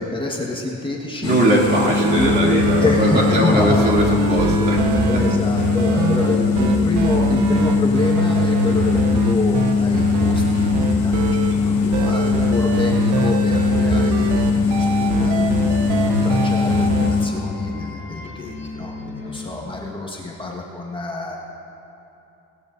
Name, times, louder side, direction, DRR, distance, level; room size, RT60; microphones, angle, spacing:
voice 1, 0.0-1.3 2.1-3.9 5.1-21.4, left 2 dB, 15° left, -3 dB, 1.5 m, -27 dB
sound 1, 1.2-17.3, left 5 dB, 70° left, 2.4 m, -20 dB
voice 2, 1.2-5.1 11.5-11.8 19.0-19.3, right 1 dB, 35° right, -3 dB, 2.8 m, -21 dB
sound 2, 1.9-11.6 11.9-17.1, right 6 dB, 90° right, 0.9 m, -25 dB
sound 3, 14.8-20.4, left 3 dB, 40° left, 1.8 m, -36 dB
20.0 x 18.0 x 2.7 m, 2.9 s
cardioid pair, 120°, 29 cm